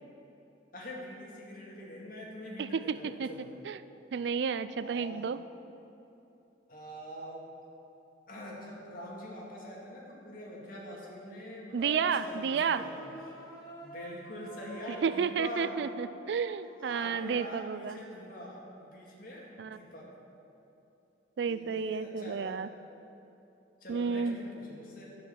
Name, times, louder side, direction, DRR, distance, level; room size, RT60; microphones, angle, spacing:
voice 1, 0.7-3.5 4.8-5.3 6.7-7.5 8.3-13.5 13.8-15.7 16.2-16.3 16.8-20.1 21.5-22.6 23.8-25.2, left 1 dB, 55° left, -3 dB, 2.3 m, -44 dB
voice 2, 2.6-3.3 3.7-3.8 4.1-5.4 11.7-12.8 15.0-18.0 19.6-19.8 21.4-22.7 23.9-24.4, right 6 dB, 75° right, 14 dB, 0.4 m, -31 dB
sound 1, 11.8-17.3, left 1 dB, 20° left, 2.3 m, -47 dB
11.0 x 6.4 x 7.4 m, 2.9 s
head